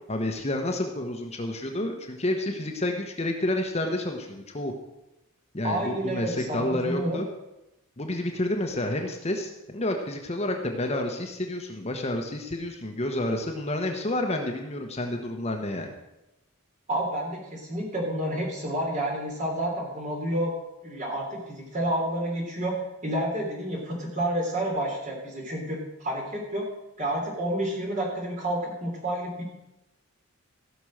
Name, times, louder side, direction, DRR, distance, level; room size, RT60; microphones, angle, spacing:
voice 1, 0.1-4.7 5.5-7.3 8.0-15.9, left 1 dB, 30° left, 3 dB, 1.0 m, -29 dB
voice 2, 5.6-7.2 16.9-20.5 20.8-22.8 23.0-26.6 27.0-29.4, right 1 dB, 35° right, -1 dB, 3.2 m, -29 dB
16.0 x 6.2 x 6.4 m, 0.94 s
head